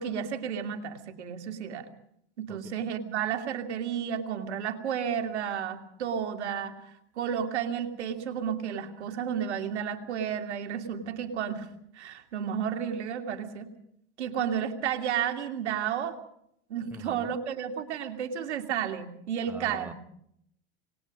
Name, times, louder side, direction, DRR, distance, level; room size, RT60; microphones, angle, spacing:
voice 1, 0.0-1.9 2.4-6.7 7.2-11.7 11.9-13.7 14.2-16.2 16.7-19.9, right 8 dB, 85° right, 5 dB, 2.7 m, -32 dB
voice 2, 16.9-17.4 19.5-19.9, right 1 dB, 5° right, 10 dB, 1.5 m, -43 dB
27.5 x 20.5 x 5.3 m, 0.71 s
hypercardioid pair, 95°, 33 cm